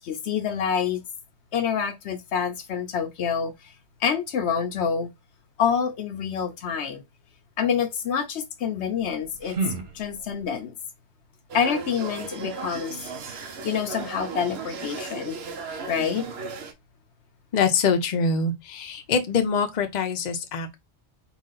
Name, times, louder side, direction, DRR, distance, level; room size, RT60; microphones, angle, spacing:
voice 1, 0.0-1.0 1.5-3.7 4.0-5.1 5.6-7.0 7.6-9.6 9.9-10.7 11.5-13.0 13.3-15.4 15.9-16.3, left 7 dB, 75° left, 0.9 m, -27 dB
sound 1, 8.9-10.6, right 3 dB, 85° right, 1.4 m, -33 dB
sound 2, 11.5-16.7, right 4 dB, 65° right, 0.9 m, -36 dB
voice 2, 17.5-20.7, left 5 dB, 45° left, 0.7 m, -24 dB
4.0 x 2.4 x 3.7 m
omnidirectional pair, 1.2 m